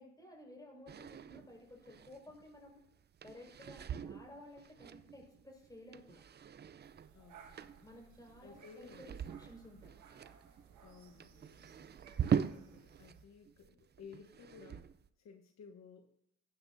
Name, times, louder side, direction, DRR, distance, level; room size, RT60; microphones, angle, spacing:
voice 1, 0.0-2.8 3.2-6.2 7.8-9.9, left 1 dB, 15° left, 0 dB, 4.9 m, -55 dB
sound 1, 0.9-13.2 13.5-15.1, right 8 dB, 35° right, 0.5 m, -42 dB
sound 2, 6.8-13.2, right 7 dB, 75° right, 1.5 m, -60 dB
voice 2, 7.1-7.8 8.4-9.0 10.8-12.0 12.5-14.9 15.2-16.1, left 6 dB, 60° left, 4 dB, 1.1 m, -56 dB
16.0 x 11.0 x 2.6 m, 0.78 s
cardioid pair, 90°, 30 cm